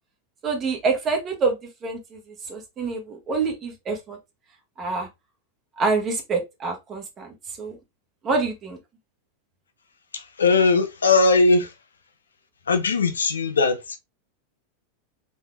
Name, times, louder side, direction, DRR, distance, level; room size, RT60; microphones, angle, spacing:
voice 1, 0.4-1.6 1.8-2.2 2.5-4.2 4.8-5.1 5.8-7.3 7.6-7.8 8.2-8.8, right 4 dB, 30° right, 1.6 m, -26 dB
voice 2, 10.1-11.7 12.7-14.0, left 3 dB, 80° left, 0.7 m, -19 dB
4.2 x 3.6 x 2.2 m
hypercardioid pair, 90°, 0 cm